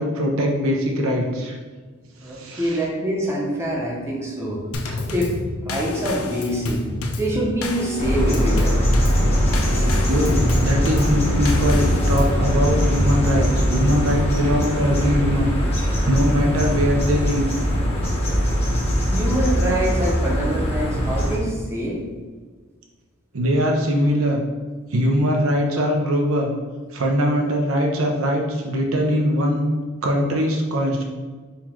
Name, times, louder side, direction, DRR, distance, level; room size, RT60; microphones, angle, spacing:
voice 1, 0.0-1.6 2.2-2.8 4.9-5.0 10.1-15.5 15.7-17.5 23.3-24.4 24.9-26.5 26.9-29.6 30.0-31.0, equal, 65° right, 1 dB, 0.6 m, -21 dB
voice 2, 2.2-4.6 5.1-5.3 5.6-6.8 7.2-8.8 19.1-22.0, right 1 dB, 15° right, -3 dB, 0.8 m, -25 dB
Drum kit / Snare drum / Bass drum, 4.7-12.4, left 2 dB, 70° left, 0.5 m, -30 dB
sound 1, 8.0-21.4, equal, 30° left, 1.0 m, -21 dB
4.1 x 2.9 x 4.4 m, 1.4 s
head